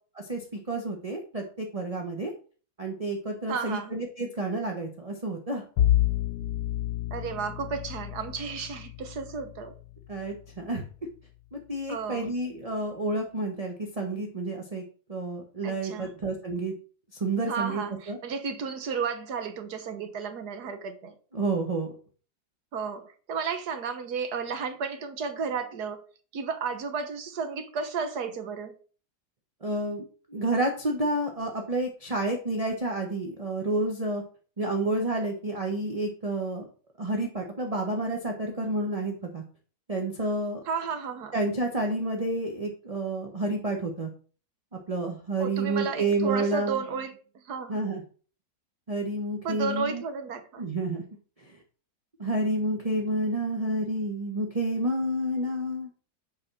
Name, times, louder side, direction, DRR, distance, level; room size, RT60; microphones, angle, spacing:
voice 1, 0.1-2.3 2.8-5.6 10.1-10.8 11.5-14.8 15.1-16.7 17.2-18.2 21.3-21.9 29.6-30.0 30.3-34.2 34.6-36.6 37.0-39.4 39.9-40.6 41.3-44.1 44.9-46.8 47.7-48.0 48.9-50.0 50.6-51.0 52.2-55.9, right 2 dB, 25° right, 1.2 m, -29 dB
voice 2, 3.5-3.9 7.1-9.8 11.9-12.3 15.6-16.1 17.5-21.2 22.7-26.0 26.3-28.8 40.6-41.4 45.4-47.2 47.4-47.8 49.4-50.6, right 5 dB, 80° right, 1.7 m, -33 dB
Bowed string instrument, 5.8-10.9, left 13 dB, 90° left, 1.2 m, -30 dB
8.4 x 4.8 x 6.1 m
omnidirectional pair, 1.7 m